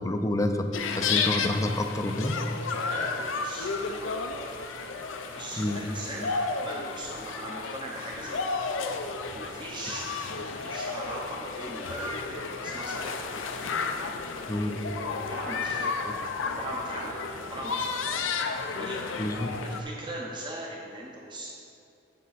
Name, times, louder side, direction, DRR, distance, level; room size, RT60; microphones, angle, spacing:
voice 1, 0.0-2.4 5.6-5.8 14.5-14.8 16.1-16.2 19.2-19.6, left 1 dB, 15° left, 6 dB, 0.5 m, -28 dB
sound 1, 0.7-19.8, left 4 dB, 90° left, 0.6 m, -32 dB
voice 2, 2.9-4.5 5.3-6.3 6.6-8.4 9.3-13.1 15.1-15.9 16.4-18.1 18.8-19.0 19.6-21.6, right 1 dB, 25° right, -3 dB, 0.8 m, -39 dB
8.4 x 7.3 x 4.1 m, 2.7 s
head